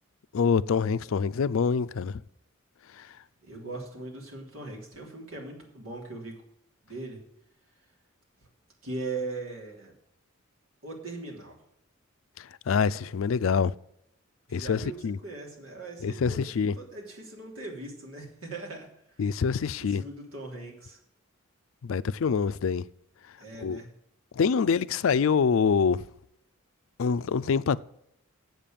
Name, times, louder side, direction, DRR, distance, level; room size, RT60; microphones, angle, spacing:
voice 1, 0.3-2.1 12.7-13.7 14.5-15.2 16.0-16.8 19.2-20.0 21.8-22.8 23.6-23.8 24.4-26.0 27.0-27.9, left 6 dB, 70° left, 0.4 m, -25 dB
voice 2, 3.4-6.3 6.8-7.2 8.8-9.9 10.8-11.6 14.5-18.9 19.8-21.0 23.4-23.9, right 3 dB, 80° right, 3.0 m, -39 dB
7.9 x 6.9 x 7.4 m
head